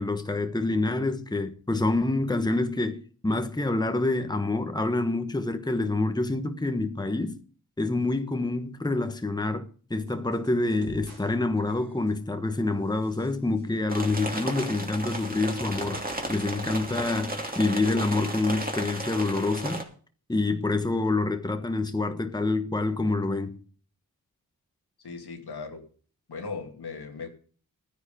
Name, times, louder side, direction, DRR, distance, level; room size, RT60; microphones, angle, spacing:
voice 1, 0.0-7.4 7.8-16.0 16.3-19.9 20.3-23.6, left 2 dB, 10° left, 1.2 m, -27 dB
sound 1, 10.1-11.3 11.6-12.3 12.8-13.7 14.1-17.3 17.6-17.7, right 3 dB, 80° right, 4.8 m, -52 dB
sound 2, 13.9-19.8, right 1 dB, 25° right, 2.7 m, -34 dB
voice 2, 25.0-25.8 26.3-27.3, left 4 dB, 85° left, 2.4 m, -37 dB
12.5 x 9.7 x 5.1 m
cardioid pair, 60°, 38 cm